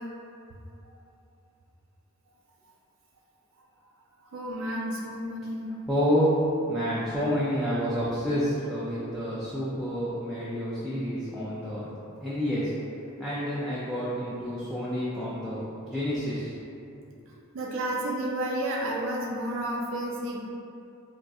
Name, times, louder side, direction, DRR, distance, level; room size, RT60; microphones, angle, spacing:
voice 1, 4.2-5.7 17.5-20.4, right 1 dB, 65° right, -2 dB, 0.5 m, -31 dB
voice 2, 5.9-6.4 6.7-11.9 12.2-12.7 13.2-16.5, equal, ahead, -10 dB, 0.3 m, -29 dB
4.0 x 2.5 x 2.3 m, 2.7 s
head